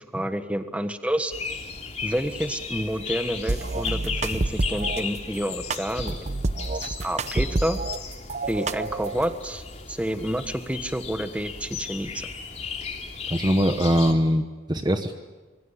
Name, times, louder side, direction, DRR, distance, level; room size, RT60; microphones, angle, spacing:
voice 1, 0.0-1.3 2.0-6.2 6.8-7.8 8.5-9.6 9.9-12.3, equal, 5° right, 8 dB, 1.4 m, -29 dB
sound 1, 1.3-14.1, left 5 dB, 40° left, 3.1 m, -35 dB
sound 2, 3.5-5.0 5.7-8.0 8.3-9.3, right 2 dB, 40° right, 0.8 m, -28 dB
voice 2, 13.3-14.4 14.7-15.1, equal, 25° right, 6 dB, 1.1 m, -21 dB
26.0 x 24.0 x 8.3 m, 1.2 s
head